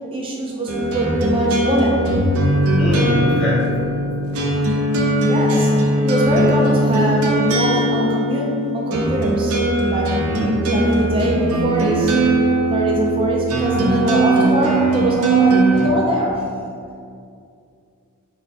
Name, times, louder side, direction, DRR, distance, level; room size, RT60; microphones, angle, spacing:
voice 1, 0.0-2.1 5.0-5.7 6.0-9.5 9.8-12.1 12.7-16.4, right 1 dB, 25° right, -3 dB, 0.5 m, -22 dB
sound 1, 0.7-15.9, right 1 dB, 90° right, 0.5 m, -19 dB
voice 2, 2.8-3.7 10.3-10.5, equal, 55° left, -8 dB, 1.2 m, -23 dB
3.2 x 2.3 x 4.0 m, 2.3 s
head